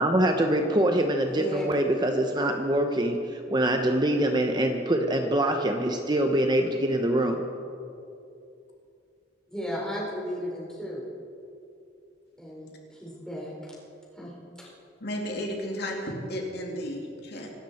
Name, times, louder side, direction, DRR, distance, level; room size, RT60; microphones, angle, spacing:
voice 1, 0.0-7.4, right 1 dB, 25° right, 4 dB, 0.8 m, -24 dB
voice 2, 1.2-1.7 9.5-11.0 12.4-13.7 14.1-14.3 14.6-14.7, equal, 5° left, -5 dB, 4.5 m, -35 dB
voice 3, 15.0-17.5, equal, 60° left, 0 dB, 2.5 m, -33 dB
25.5 x 13.0 x 4.3 m, 2.6 s
head